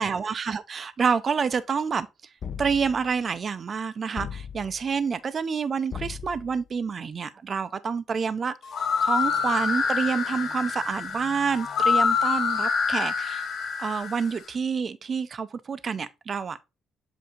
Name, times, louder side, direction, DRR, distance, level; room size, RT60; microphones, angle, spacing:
voice 1, 0.0-2.1 2.6-8.5 9.0-13.5 13.8-16.6, right 6 dB, 45° right, 0.4 m, -28 dB
sound 1, 2.4-3.2 4.2-4.9 5.9-6.7, left 7 dB, 50° left, 0.6 m, -37 dB
sound 2, 8.6-14.4, left 5 dB, 75° left, 2.0 m, -26 dB
7.7 x 2.7 x 5.0 m
cardioid pair, 90°, 0 cm